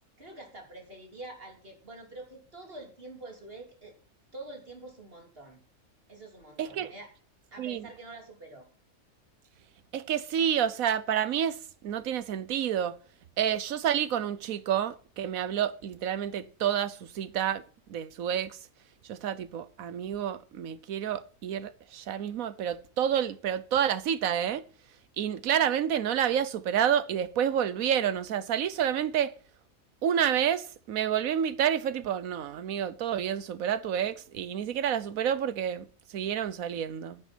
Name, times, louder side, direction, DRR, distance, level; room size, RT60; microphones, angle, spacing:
voice 1, 0.2-3.9 4.3-5.6 6.1-7.1 7.5-8.7, right 2 dB, 45° right, 3.5 m, -46 dB
voice 2, 6.6-6.9 7.6-7.9 9.9-11.6 11.8-13.0 13.4-17.6 17.9-18.6 19.1-24.6 25.2-29.3 30.0-35.9 36.1-37.2, right 9 dB, 85° right, 1.3 m, -29 dB
9.8 x 8.9 x 6.1 m
omnidirectional pair, 1.4 m